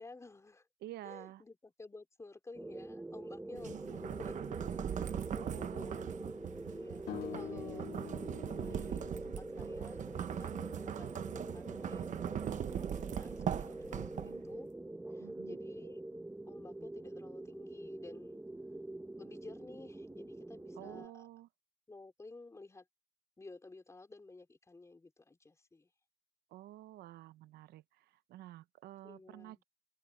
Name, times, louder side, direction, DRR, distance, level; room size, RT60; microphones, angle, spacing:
voice 1, 0.0-0.7 1.0-6.3 6.7-7.9 8.3-14.7 15.1-16.0 16.5-18.4 19.2-21.2 21.9-22.9 23.4-25.9 29.0-29.6, left 3 dB, 15° left, 4.4 m, -53 dB
voice 2, 0.8-1.4 3.5-4.0 5.4-6.2 7.1-7.9 14.0-14.4 15.2-15.6 20.7-21.5 26.5-29.6, right 14 dB, 75° right, 0.6 m, -51 dB
sound 1, 2.5-21.1, right 2 dB, 10° right, 1.1 m, -45 dB
sound 2, 3.6-14.5, right 9 dB, 45° right, 1.0 m, -40 dB
sound 3, 7.1-10.2, left 12 dB, 65° left, 2.0 m, -47 dB
cardioid pair, 110°, 17 cm